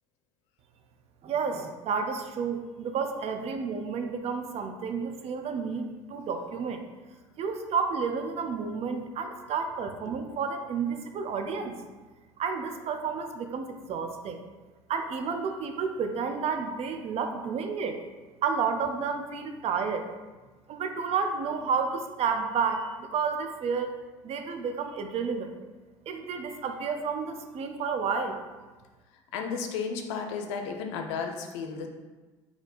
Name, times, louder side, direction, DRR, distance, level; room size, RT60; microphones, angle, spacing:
voice 1, 1.2-6.8 7.4-11.8 12.4-14.4 14.9-18.0 18.4-20.1 20.7-23.9 24.2-25.5 26.1-28.4, right 5 dB, 40° right, 5 dB, 0.5 m, -31 dB
voice 2, 29.1-31.9, left 5 dB, 65° left, 5 dB, 0.6 m, -33 dB
4.1 x 2.8 x 4.1 m, 1.3 s
figure-of-eight pair, 65°, 16 cm